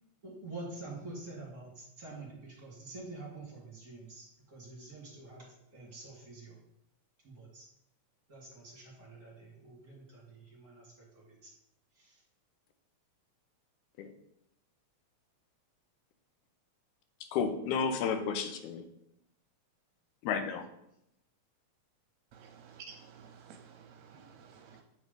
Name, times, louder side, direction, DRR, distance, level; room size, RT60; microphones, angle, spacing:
voice 1, 0.2-4.3 4.5-5.4 5.7-6.5 7.3-7.6 8.3-10.8, right 2 dB, 35° right, -4 dB, 1.9 m, -47 dB
voice 2, 17.3-18.8 20.2-20.6, left 6 dB, 85° left, 7 dB, 2.2 m, -32 dB
voice 3, 22.3-24.8, right 6 dB, 75° right, 4 dB, 1.8 m, -53 dB
7.9 x 3.2 x 5.0 m, 0.78 s
omnidirectional pair, 3.4 m